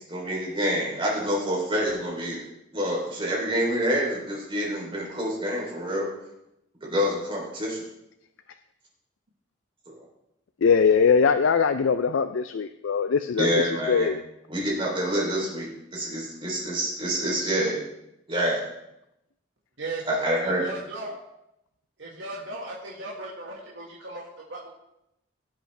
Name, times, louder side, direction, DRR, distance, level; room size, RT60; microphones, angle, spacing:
voice 1, 0.1-2.4 2.7-6.1 6.8-7.8 13.4-14.1 14.5-17.8 18.3-18.6 20.1-20.7, equal, 25° right, -3 dB, 3.2 m, -27 dB
voice 2, 10.6-13.5 13.9-14.2, left 6 dB, 80° left, 9 dB, 0.4 m, -21 dB
voice 3, 19.8-21.2 22.0-24.7, right 2 dB, 70° right, -4 dB, 1.7 m, -37 dB
16.5 x 8.0 x 3.3 m, 0.84 s
head